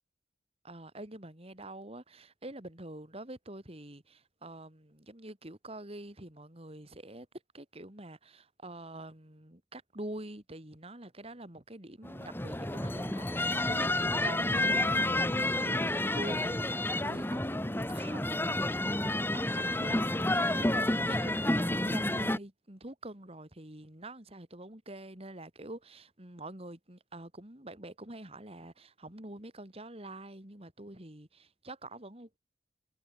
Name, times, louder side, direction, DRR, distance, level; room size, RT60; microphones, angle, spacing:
voice 1, 0.6-7.3 7.5-32.4, right 1 dB, 35° right, 3.3 m, -46 dB
sound 1, 12.0-22.4, left 1 dB, 10° left, 1.9 m, -30 dB
head